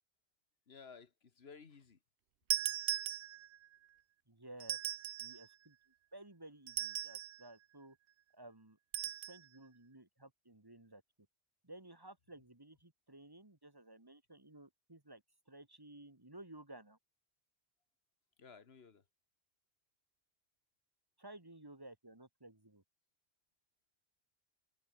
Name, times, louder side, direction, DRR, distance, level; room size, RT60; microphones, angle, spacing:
voice 1, 0.7-2.0 18.4-19.0, left 5 dB, 70° left, 1.7 m, -56 dB
sound 1, 2.5-3.7 4.6-5.5 6.7-7.4 8.9-9.4, right 12 dB, 85° right, 0.9 m, -38 dB
voice 2, 4.3-4.8 5.2-5.8 6.1-8.0 8.3-8.8 9.3-11.0 11.6-17.0 21.2-22.8, right 1 dB, 20° right, 2.0 m, -55 dB
omnidirectional pair, 1.1 m